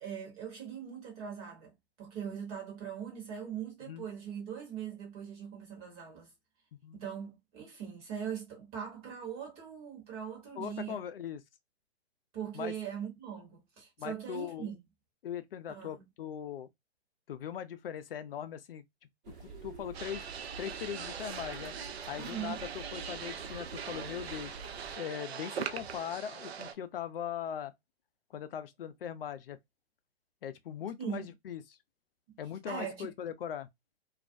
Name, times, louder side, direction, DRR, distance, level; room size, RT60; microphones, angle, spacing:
voice 1, 0.0-6.3 6.9-11.0 12.3-14.8 15.7-16.0 22.2-22.6 31.0-31.3 32.7-33.1, right 8 dB, 25° right, 1.0 m, -41 dB
voice 2, 10.6-11.4 12.5-12.7 14.0-14.7 15.2-16.7 17.3-18.8 19.6-20.2 20.6-21.7 22.1-24.6 25.0-27.7 28.3-29.6 30.4-31.8 32.4-33.7, left 9 dB, 60° left, 0.5 m, -40 dB
sound 1, 19.2-25.0, right 4 dB, 50° right, 1.0 m, -48 dB
sound 2, 19.9-26.7, right 7 dB, 70° right, 0.6 m, -41 dB
2.4 x 2.0 x 2.5 m
hypercardioid pair, 135°, 33 cm